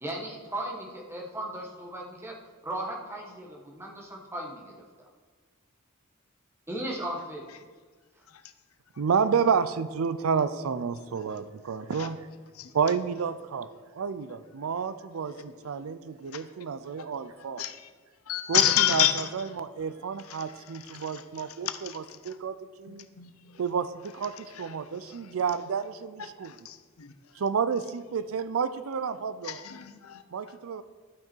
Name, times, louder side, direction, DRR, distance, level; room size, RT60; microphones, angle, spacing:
voice 1, 0.0-2.3 2.6-4.8 6.7-7.6, right 1 dB, 10° right, 1.2 m, -36 dB
voice 2, 9.0-12.3 12.7-13.7 13.9-17.6 18.5-23.1 23.6-26.5 27.4-29.6 30.3-30.8, right 6 dB, 75° right, 0.4 m, -30 dB
voice 3, 18.3-19.2 20.9-21.1 21.8-21.9 22.9-23.3 26.7-27.1 29.4-30.2, left 11 dB, 80° left, 0.7 m, -27 dB
12.0 x 5.9 x 4.5 m
head